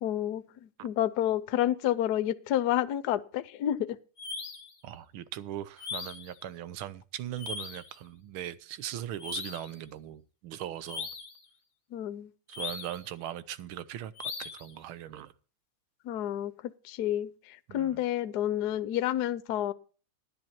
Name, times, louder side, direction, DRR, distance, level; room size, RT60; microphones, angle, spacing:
voice 1, 0.0-4.0 11.9-12.3 16.0-19.7, left 12 dB, 65° left, 1.0 m, -30 dB
sound 1, 4.2-4.7 5.8-6.3 7.4-7.9 9.2-9.8 10.8-11.4 12.5-13.1 14.2-14.7, left 5 dB, 35° left, 1.5 m, -39 dB
voice 2, 4.8-11.1 12.5-15.3 17.7-18.0, right 11 dB, 75° right, 1.6 m, -40 dB
12.0 x 10.5 x 4.4 m
omnidirectional pair, 2.4 m